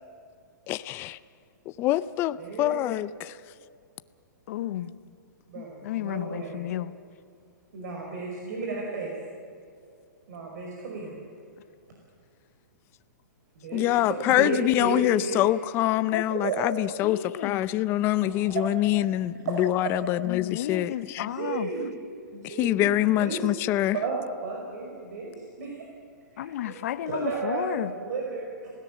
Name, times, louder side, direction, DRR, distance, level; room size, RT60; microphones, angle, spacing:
voice 1, 0.7-1.2 1.8-3.3 13.7-21.3 22.4-24.0, left 14 dB, 20° left, 0.5 m, -25 dB
voice 2, 2.4-2.8 5.5-6.6 7.7-9.1 10.3-11.2 13.6-15.4 16.3-16.7 17.1-17.2 18.2-18.7 19.4-19.6 19.8-20.1 20.8-21.9 22.3-23.5 23.9-25.8 26.3-26.8 27.1-28.7, right 3 dB, 65° right, 5.2 m, -33 dB
voice 3, 4.5-5.0 5.8-7.0 16.1-16.3 17.0-17.6 20.2-21.7 26.4-27.9, left 12 dB, 55° left, 1.0 m, -32 dB
27.5 x 17.0 x 7.4 m
hypercardioid pair, 155°, 10 cm